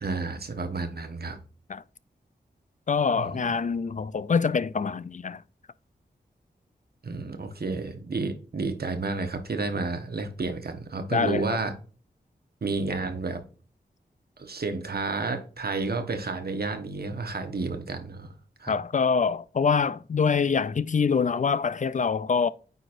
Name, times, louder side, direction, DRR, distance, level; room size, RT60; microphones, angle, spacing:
voice 1, 0.0-1.4 3.1-3.4 7.0-11.7 12.6-13.4 14.4-18.3 18.6-18.7, right 3 dB, 60° right, 1.2 m, -31 dB
voice 2, 2.9-5.4 11.1-11.6 18.7-22.5, left 5 dB, 45° left, 0.4 m, -25 dB
9.1 x 4.1 x 2.6 m
cardioid pair, 55°, 18 cm